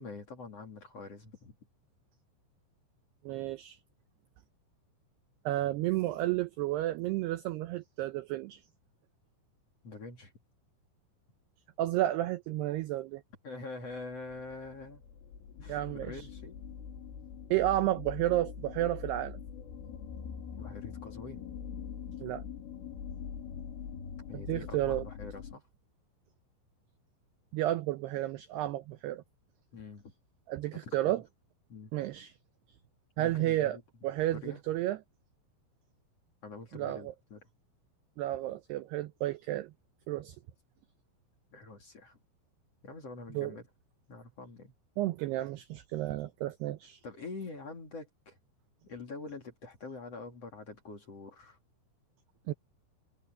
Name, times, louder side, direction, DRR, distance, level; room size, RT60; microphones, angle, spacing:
voice 1, 0.0-1.5 9.8-10.3 13.4-15.0 15.6-16.6 20.5-21.4 24.3-25.6 29.7-30.1 30.8-31.1 31.7-31.9 33.2-33.8 34.4-34.6 36.4-37.4 41.5-42.2 42.8-43.7 44.1-44.7 47.0-48.4 48.8-51.6, left 3 dB, 40° left, 2.8 m, -45 dB
voice 2, 3.2-3.8 5.5-8.6 11.8-13.2 15.7-16.3 17.5-19.4 22.2-22.4 24.3-25.0 27.5-29.2 30.5-31.2 31.9-32.3 33.2-33.8 34.0-35.0 36.7-37.1 38.2-39.7 40.1-40.4 43.3-43.6 45.0-47.0 52.5-52.6, right 15 dB, 85° right, 2.3 m, -32 dB
sound 1, 13.9-25.6, left 7 dB, 80° left, 6.4 m, -43 dB
omnidirectional pair, 5.7 m